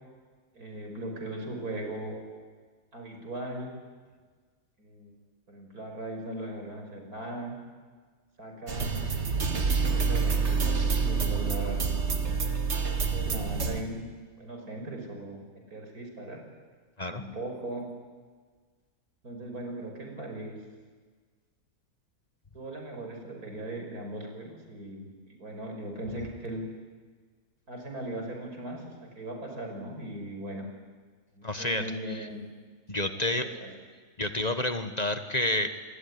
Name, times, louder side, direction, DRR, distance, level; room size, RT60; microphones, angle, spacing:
voice 1, 0.5-2.2 2.9-3.7 4.8-5.1 5.5-7.6 8.4-9.0 9.5-11.9 13.1-14.1 14.4-15.4 15.7-16.4 17.1-17.9 19.2-20.6 22.5-26.6 27.7-30.7 31.3-32.5 33.1-33.7, right 1 dB, 90° right, 2 dB, 6.2 m, -39 dB
sound 1, 8.7-13.8, right 5 dB, 50° right, 2.0 m, -27 dB
voice 2, 31.4-32.3 32.9-33.5 34.2-35.7, left 1 dB, 30° left, 8 dB, 1.5 m, -29 dB
28.0 x 21.5 x 9.8 m, 1.5 s
omnidirectional pair, 1.5 m